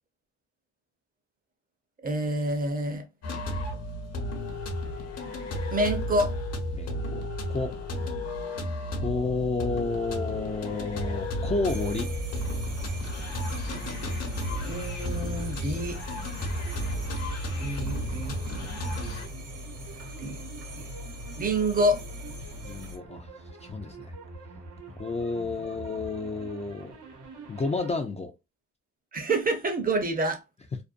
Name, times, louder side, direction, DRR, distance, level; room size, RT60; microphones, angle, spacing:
voice 1, 2.0-3.1 5.7-6.3 14.2-16.0 17.6-18.7 20.2-20.4 20.7-20.8 21.4-22.0 29.1-30.4, right 1 dB, 30° right, 0.6 m, -28 dB
sound 1, 3.2-19.3, left 1 dB, 60° left, 0.9 m, -33 dB
voice 2, 6.7-7.8 8.9-12.1 22.6-23.3 23.6-24.1 25.0-27.0 27.5-28.3, left 3 dB, 20° left, 0.4 m, -31 dB
sound 2, 11.7-23.0, equal, 55° right, 0.9 m, -40 dB
sound 3, 12.8-27.9, right 3 dB, 80° right, 0.9 m, -47 dB
2.5 x 2.1 x 2.4 m
cardioid pair, 90°, 30 cm